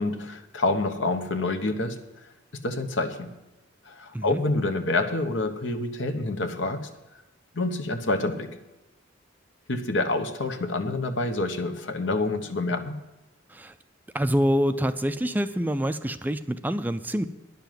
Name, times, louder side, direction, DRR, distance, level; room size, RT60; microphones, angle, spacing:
voice 1, 0.0-2.0 2.6-3.4 3.9-6.9 7.5-8.6 9.7-13.0, left 2 dB, 70° left, 1.1 m, -27 dB
voice 2, 14.1-17.2, equal, 10° right, 0.4 m, -26 dB
10.5 x 6.9 x 9.1 m
head